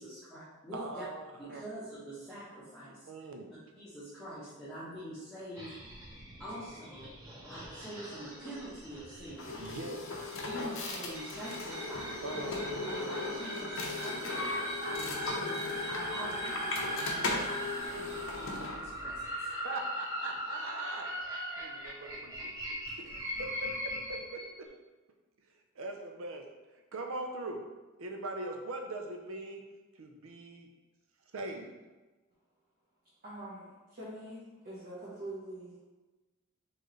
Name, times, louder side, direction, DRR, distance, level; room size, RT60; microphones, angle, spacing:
voice 1, 0.0-1.0 1.4-3.1 3.8-5.7 6.4-7.1 7.5-9.6 10.4-12.6 12.8-14.5 14.8-19.5, equal, ahead, -14 dB, 1.0 m, -45 dB
voice 2, 0.7-1.6 3.1-3.5 7.5-7.6 9.6-10.1 12.2-12.6 17.9-18.1 19.5-21.1 21.6-22.5 23.0-23.7 24.1-24.4 25.8-26.4 26.9-27.6 28.0-29.6 30.0-30.7 31.3-31.8, right 2 dB, 70° right, 3 dB, 0.6 m, -41 dB
sound 1, 5.5-24.5, equal, 15° right, 1.3 m, -40 dB
sound 2, 9.4-18.8, left 2 dB, 60° left, 0.6 m, -37 dB
voice 3, 33.2-35.8, right 1 dB, 40° right, -9 dB, 1.0 m, -44 dB
4.4 x 3.2 x 3.1 m, 1.2 s
head